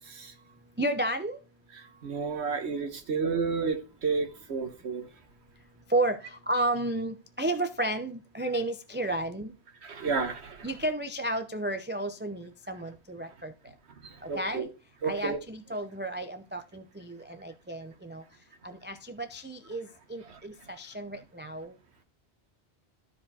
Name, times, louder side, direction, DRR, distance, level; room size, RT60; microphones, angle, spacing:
voice 1, 0.8-1.4 5.9-9.5 10.6-13.5 14.2-14.7 15.0-18.2 18.6-21.7, right 1 dB, 15° right, 0.5 m, -32 dB
voice 2, 2.0-5.0 9.8-10.7 14.3-14.6 15.0-15.4 20.3-20.4, right 5 dB, 75° right, 1.5 m, -31 dB
13.0 x 5.0 x 4.2 m
omnidirectional pair, 1.1 m